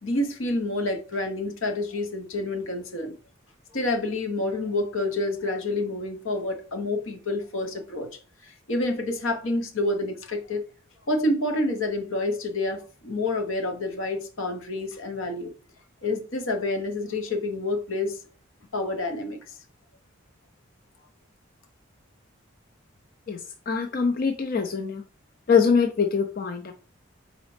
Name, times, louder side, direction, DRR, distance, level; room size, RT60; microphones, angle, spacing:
voice 1, 0.0-3.1 3.7-8.1 8.4-10.6 11.1-15.5 16.0-18.2 18.7-19.6, left 2 dB, 75° left, 0.9 m, -28 dB
voice 2, 23.3-25.0 25.5-26.7, left 5 dB, 45° left, 0.4 m, -23 dB
4.0 x 4.0 x 3.2 m
head